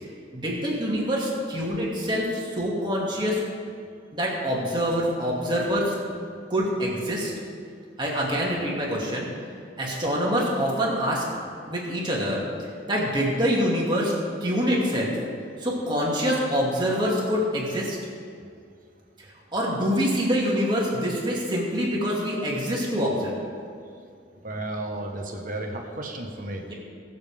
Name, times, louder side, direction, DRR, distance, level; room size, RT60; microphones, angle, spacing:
voice 1, 0.3-3.4 4.1-5.9 6.5-7.3 8.0-9.3 9.8-11.2 11.7-12.4 12.9-14.1 14.4-15.2 15.6-18.0 19.5-23.4 26.6-26.7, equal, 25° right, -4 dB, 2.3 m, -25 dB
voice 2, 24.4-26.7, right 1 dB, 45° right, 2 dB, 1.3 m, -33 dB
21.5 x 7.2 x 3.6 m, 2.2 s
head